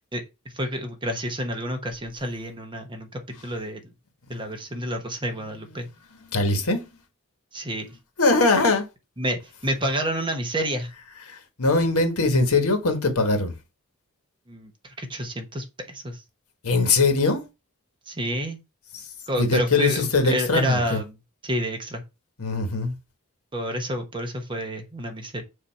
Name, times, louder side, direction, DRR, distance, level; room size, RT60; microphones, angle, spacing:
voice 1, 0.5-3.8 4.3-5.9 7.5-7.9 9.2-10.9 14.5-16.2 18.1-18.6 19.3-21.2 21.4-22.0 23.5-25.4, equal, 20° right, 1.2 m, -29 dB
voice 2, 6.3-6.9 8.2-8.9 11.3-13.5 16.6-17.4 18.9-19.0 19.4-21.0 22.4-22.9, left 3 dB, 70° left, 1.5 m, -21 dB
6.7 x 2.8 x 5.7 m
head